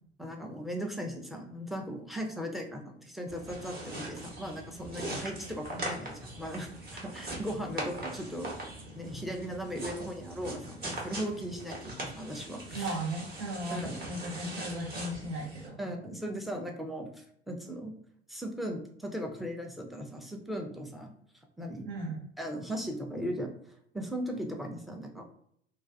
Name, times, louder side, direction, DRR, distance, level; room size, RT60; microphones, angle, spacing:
voice 1, 0.2-13.0 13.7-14.0 15.8-17.9 18.3-21.1 21.6-21.9 22.4-23.5 23.9-25.3, equal, ahead, 3 dB, 0.4 m, -38 dB
sound 1, 3.3-15.7, right 1 dB, 30° right, 0.9 m, -41 dB
voice 2, 12.7-15.8 21.9-22.2, right 1 dB, 65° right, -5 dB, 0.8 m, -36 dB
2.3 x 2.3 x 2.4 m, 0.67 s
hypercardioid pair, 65°, 32 cm